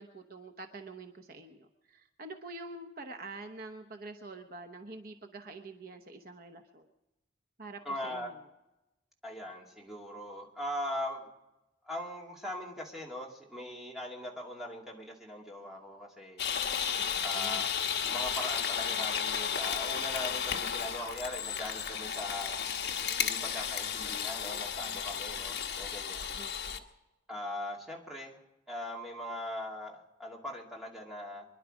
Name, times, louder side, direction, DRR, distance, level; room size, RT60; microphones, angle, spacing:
voice 1, 0.0-6.9 7.6-8.4 17.0-17.7 26.4-26.8, right 2 dB, 50° right, 5 dB, 1.0 m, -46 dB
voice 2, 7.8-8.3 9.2-11.3 11.8-16.4 17.2-17.7 18.1-22.6 23.1-26.4 27.3-28.4 28.7-31.5, left 1 dB, ahead, -2 dB, 2.5 m, -40 dB
sound 1, 16.4-26.8, left 7 dB, 60° left, 1.2 m, -33 dB
24.5 x 11.0 x 5.1 m, 0.97 s
head